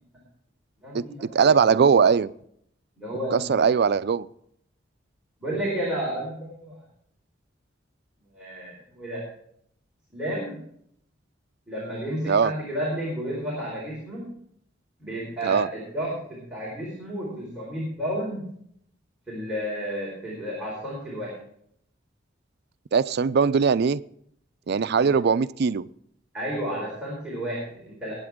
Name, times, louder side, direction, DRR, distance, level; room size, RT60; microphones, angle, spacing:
voice 1, 0.8-1.9 3.0-3.6 5.4-6.8 8.3-9.2 10.1-10.6 11.7-14.2 15.0-18.4 19.3-21.3 24.8-25.1 26.3-28.1, equal, 5° right, 4.4 m, -32 dB
voice 2, 1.3-2.3 3.3-4.3 12.3-12.5 15.4-15.7 22.9-24.0 24.7-25.9, right 6 dB, 60° right, 0.4 m, -20 dB
20.5 x 8.7 x 3.7 m
head